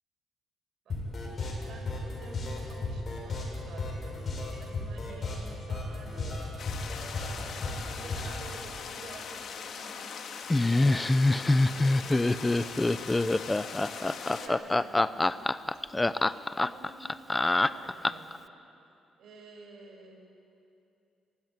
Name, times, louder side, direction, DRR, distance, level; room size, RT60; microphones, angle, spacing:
voice 1, 0.8-6.7 7.2-15.5 15.7-18.4 19.2-20.1, right 3 dB, 70° right, 2 dB, 6.0 m, -51 dB
sound 1, 0.9-8.5, left 3 dB, 45° left, 7.2 m, -35 dB
sound 2, 6.6-14.5, left 6 dB, 65° left, 1.9 m, -41 dB
Laughter, 10.5-18.4, left 2 dB, 15° left, 0.6 m, -25 dB
26.5 x 15.5 x 9.6 m, 2.7 s
cardioid pair, 90°, 0 cm